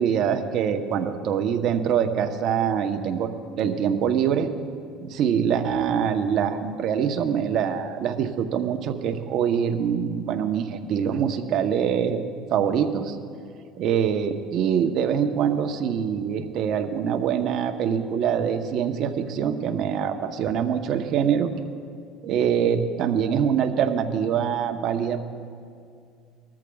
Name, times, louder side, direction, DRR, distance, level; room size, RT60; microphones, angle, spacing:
voice 1, 0.0-3.3 3.6-4.5 5.0-13.2 13.8-21.5 22.2-25.2, right 8 dB, 55° right, 6 dB, 0.8 m, -24 dB
20.5 x 13.5 x 2.3 m, 2.3 s
cardioid pair, 115°, 0 cm